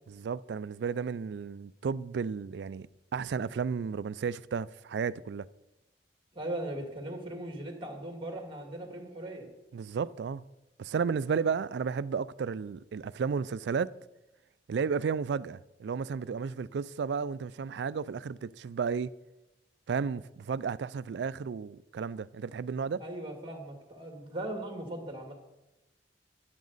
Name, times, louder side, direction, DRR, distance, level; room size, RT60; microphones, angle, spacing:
voice 1, 0.1-2.9 3.1-5.5 9.7-10.4 10.8-13.9 14.7-19.1 19.9-23.0, right 6 dB, 70° right, 0.3 m, -33 dB
voice 2, 6.3-9.5 23.0-25.3, right 1 dB, 30° right, 1.9 m, -39 dB
12.0 x 10.5 x 4.0 m
head